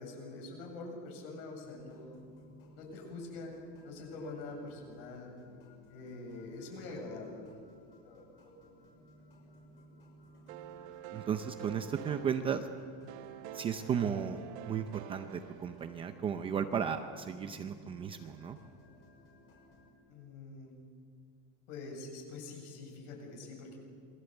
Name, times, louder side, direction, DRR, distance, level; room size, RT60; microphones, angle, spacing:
voice 1, 0.0-2.2 2.7-3.5 3.8-5.3 5.9-8.5 9.5-10.0 20.1-20.8 21.7-23.8, left 3 dB, 55° left, 1 dB, 7.8 m, -45 dB
sound 1, 1.6-19.9, left 1 dB, 35° left, 6.5 m, -59 dB
sound 2, 10.5-16.4, right 11 dB, 75° right, 1.1 m, -48 dB
voice 2, 11.1-12.7 13.5-18.6, right 7 dB, 15° right, 7 dB, 0.6 m, -35 dB
27.5 x 22.5 x 8.0 m, 2.2 s
supercardioid pair, 180°, 33 cm